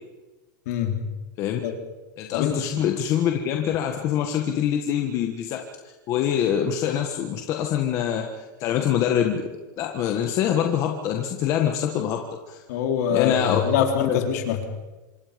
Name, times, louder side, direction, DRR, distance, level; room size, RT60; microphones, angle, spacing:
voice 1, 0.7-1.0 1.6-1.8 2.3-2.7 12.7-14.6, left 8 dB, 55° left, 4 dB, 3.7 m, -24 dB
voice 2, 2.2-8.3 8.6-9.4 9.8-12.6 13.1-13.7 14.0-14.2, left 9 dB, 30° left, 3 dB, 1.6 m, -24 dB
26.5 x 23.5 x 5.3 m, 1.2 s
supercardioid pair, 175°, 10 cm